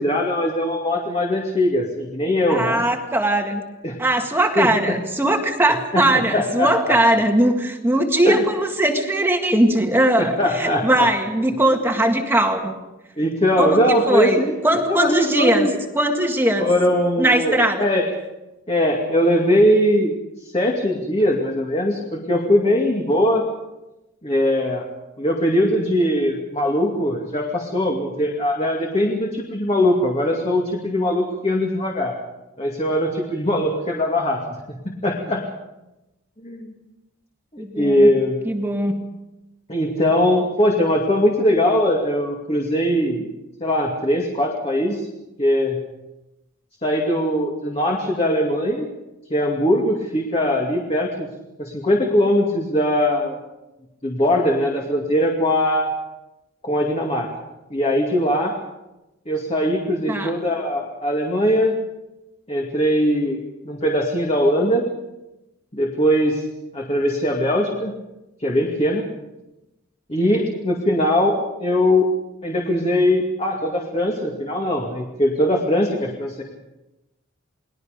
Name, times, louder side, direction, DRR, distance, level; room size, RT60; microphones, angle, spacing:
voice 1, 0.0-2.8 3.8-3.9 4.6-5.0 5.9-7.0 8.2-8.4 10.2-11.1 13.2-14.6 14.9-15.8 16.6-18.1 18.7-20.1 20.4-23.4 24.2-24.9 25.2-32.1 32.6-34.4 34.7-35.4 36.4-36.7 37.5-38.4 39.7-43.3 43.6-45.1 45.4-45.8 46.8-48.9 49.3-51.3 51.6-53.4 54.0-55.9 56.6-57.3 57.7-58.5 59.3-61.8 62.5-64.8 65.7-66.4 66.7-68.0 68.4-69.0 70.1-72.1 72.4-76.4, left 1 dB, 30° left, 0 dB, 2.4 m, -20 dB
voice 2, 2.5-3.6 4.0-12.7 13.6-15.7 16.0-16.7 17.2-17.9 37.6-38.1 38.5-39.0 60.1-60.3, right 1 dB, 10° right, 3 dB, 1.8 m, -20 dB
29.5 x 20.5 x 5.2 m, 0.98 s
head